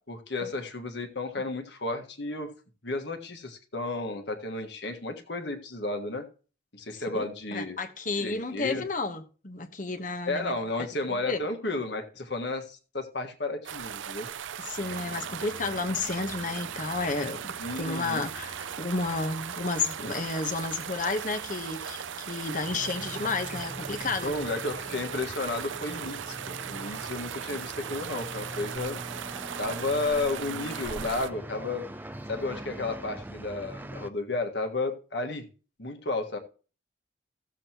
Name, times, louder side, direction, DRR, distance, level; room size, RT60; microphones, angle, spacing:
voice 1, 0.0-2.5 2.8-6.2 6.7-7.8 8.2-8.8 10.3-14.3 17.6-18.3 24.2-29.0 29.6-31.9 32.3-35.5 35.8-36.4, left 2 dB, 60° left, 1.6 m, -32 dB
voice 2, 6.9-7.2 7.5-10.5 11.1-11.4 14.6-24.3, left 3 dB, 40° left, 1.0 m, -32 dB
sound 1, 13.6-31.3, right 8 dB, 75° right, 0.5 m, -38 dB
sound 2, 14.8-33.2, left 1 dB, 5° left, 1.4 m, -51 dB
sound 3, 22.7-34.1, right 1 dB, 10° right, 0.4 m, -42 dB
15.5 x 7.5 x 3.0 m
head